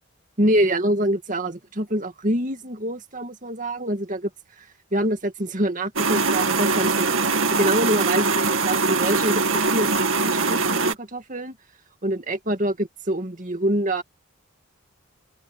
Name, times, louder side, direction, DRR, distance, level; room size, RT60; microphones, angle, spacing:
voice 1, 0.4-4.3 4.6-11.6 12.0-14.0, right 1 dB, 40° right, 2.3 m, -25 dB
sound 1, 6.0-10.9, right 3 dB, 80° right, 2.3 m, -22 dB
open air
head